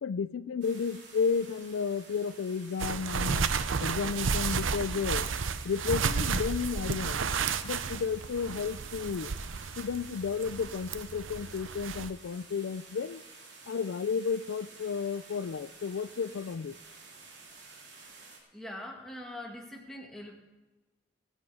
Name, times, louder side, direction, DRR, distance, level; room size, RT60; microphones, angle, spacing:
voice 1, 0.0-3.5 3.8-5.3 5.6-7.2 7.6-9.3 9.8-13.2 13.7-16.8, left 6 dB, 85° left, 15 dB, 0.4 m, -32 dB
sound 1, 0.6-18.4, right 4 dB, 65° right, 3.1 m, -52 dB
sound 2, 2.8-12.1, right 5 dB, 90° right, 0.7 m, -32 dB
voice 2, 18.5-20.4, left 1 dB, ahead, -1 dB, 1.9 m, -43 dB
19.5 x 8.2 x 4.9 m, 1.1 s
head